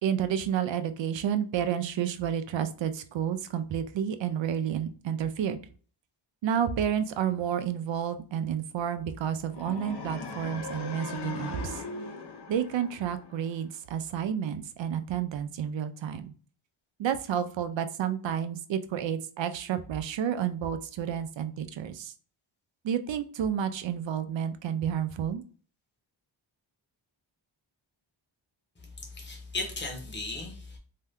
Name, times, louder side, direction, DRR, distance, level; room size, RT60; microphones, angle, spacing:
voice 1, 0.0-5.6 6.4-11.8 12.5-16.3 17.0-22.1 22.8-25.4, right 9 dB, 65° right, 10 dB, 0.5 m, -30 dB
sound 1, 9.5-13.6, left 4 dB, 55° left, 0.7 m, -39 dB
voice 2, 29.0-30.8, left 2 dB, 20° left, 2 dB, 0.9 m, -36 dB
2.7 x 2.2 x 3.5 m, 0.41 s
wide cardioid pair, 90°, 48 cm